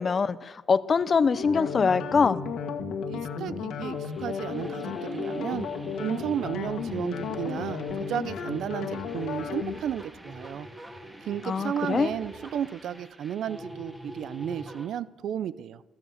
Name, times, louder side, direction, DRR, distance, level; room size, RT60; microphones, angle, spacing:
voice 1, 0.0-2.4 11.4-12.1, left 5 dB, 40° left, 14 dB, 0.7 m, -24 dB
sound 1, 1.3-9.8, left 5 dB, 80° left, 1.8 m, -34 dB
voice 2, 3.1-5.7 6.0-10.7 11.2-15.8, right 9 dB, 70° right, 18 dB, 0.6 m, -33 dB
sound 2, 3.8-14.9, equal, 15° right, 3.2 m, -45 dB
14.5 x 13.5 x 6.5 m, 1.1 s
cardioid pair, 90°, 0 cm